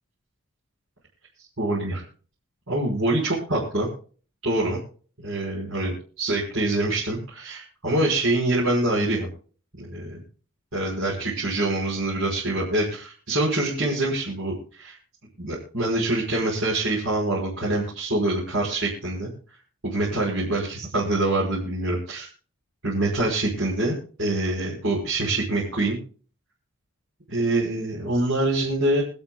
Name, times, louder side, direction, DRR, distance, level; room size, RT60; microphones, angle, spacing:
voice 1, 1.6-2.0 2.7-3.9 4.4-4.8 5.2-9.3 9.8-10.2 10.7-14.9 15.4-19.3 19.8-22.3 22.8-26.0 27.3-29.0, right 2 dB, 70° right, -6 dB, 5.7 m, -25 dB
27.5 x 9.4 x 2.4 m, 0.39 s
head